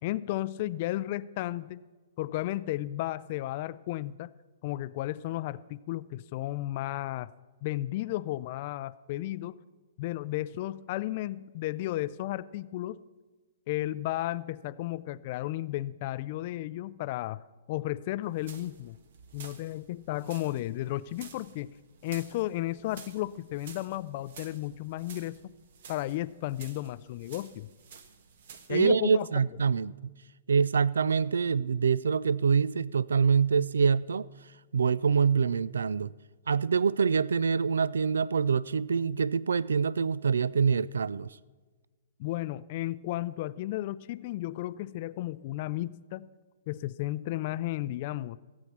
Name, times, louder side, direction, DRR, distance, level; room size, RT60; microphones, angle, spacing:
voice 1, 0.0-1.8 2.2-4.3 4.6-7.3 7.6-9.6 10.0-13.0 13.7-17.4 17.7-19.0 19.3-21.7 22.0-25.5 25.9-27.7 28.7-29.3 42.2-46.3 46.7-48.4, left 15 dB, 45° left, 0.4 m, -33 dB
sound 1, 18.2-28.8, right 6 dB, 65° right, 1.2 m, -52 dB
voice 2, 28.7-30.1 30.5-34.3 34.7-36.1 36.5-41.4, right 6 dB, 90° right, 0.3 m, -25 dB
16.0 x 8.4 x 6.0 m
hypercardioid pair, 140°, 0 cm